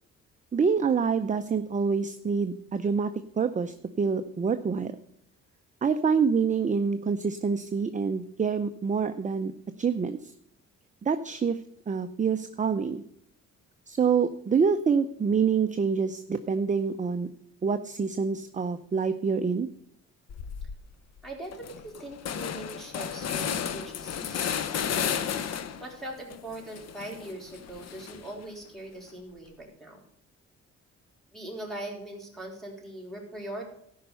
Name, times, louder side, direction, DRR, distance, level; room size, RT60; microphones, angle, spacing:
voice 1, 0.5-4.9 5.8-9.5 9.8-10.3 11.0-11.6 11.9-13.0 13.9-17.3 17.6-19.7, right 5 dB, 25° right, 9 dB, 0.6 m, -26 dB
sound 1, 20.3-20.8 21.2-21.3 21.5-25.9 26.3-28.4, left 8 dB, 60° left, 0.9 m, -33 dB
voice 2, 21.2-25.0 25.8-30.0 31.3-33.6, right 1 dB, ahead, -1 dB, 4.2 m, -41 dB
13.5 x 5.6 x 6.8 m, 0.69 s
cardioid pair, 90°, 30 cm